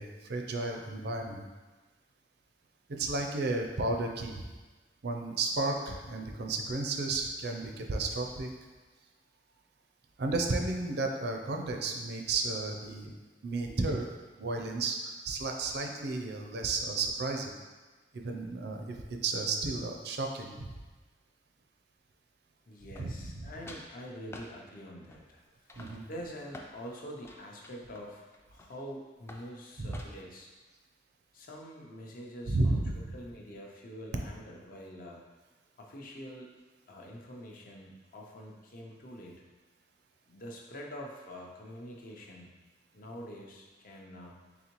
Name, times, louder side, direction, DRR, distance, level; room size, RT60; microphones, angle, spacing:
voice 1, 0.0-1.5 2.9-4.4 5.0-8.5 10.2-13.1 13.4-14.0 14.4-17.5 18.1-19.0 19.2-20.7 23.0-23.5 25.8-26.0 29.8-30.0 32.5-33.2, right 3 dB, 65° right, 3 dB, 0.5 m, -33 dB
voice 2, 22.7-28.3 28.5-30.5 31.3-32.8 33.1-35.2 35.8-36.5 36.9-39.4 40.3-42.5 42.9-44.4, equal, 55° left, -1 dB, 0.6 m, -46 dB
sound 1, 23.0-23.4 23.7-23.9 24.3-24.5 25.1-25.4 25.7-26.8 27.2-28.9 29.3-29.5 29.9-30.3, left 1 dB, 15° left, 0.3 m, -49 dB
4.0 x 3.6 x 3.0 m, 1.3 s
head